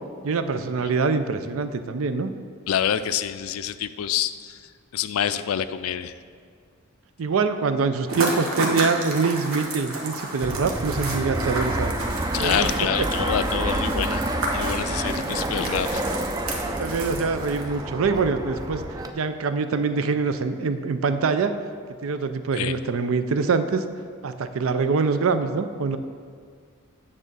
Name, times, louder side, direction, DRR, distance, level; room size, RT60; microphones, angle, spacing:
voice 1, 0.2-2.3 7.2-11.9 12.4-12.7 16.8-18.8 19.1-21.5 22.0-23.8 24.2-26.0, right 4 dB, 70° right, 10 dB, 0.5 m, -24 dB
voice 2, 2.7-4.6 4.9-6.1 12.3-14.3 14.5-16.0 22.6-22.8, left 9 dB, 80° left, 13 dB, 0.4 m, -27 dB
sound 1, 8.1-17.8, right 2 dB, 90° right, 1.3 m, -32 dB
Fixed-wing aircraft airplane, 10.4-19.1, right 1 dB, 15° right, 0.4 m, -28 dB
8.8 x 3.7 x 6.7 m, 2.1 s
head